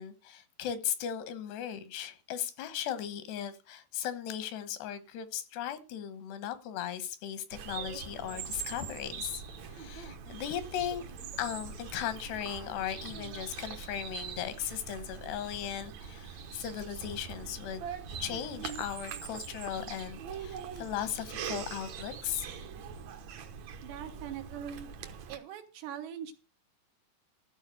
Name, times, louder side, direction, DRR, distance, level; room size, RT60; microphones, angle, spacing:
voice 1, 0.0-11.1 11.4-17.8 18.2-22.5, left 10 dB, 85° left, 3.3 m, -37 dB
Bird vocalization bird call bird song, 7.5-25.4, right 7 dB, 70° right, 1.7 m, -42 dB
voice 2, 23.8-24.9 25.3-26.3, right 9 dB, 85° right, 3.6 m, -41 dB
13.5 x 5.0 x 7.8 m
omnidirectional pair, 4.7 m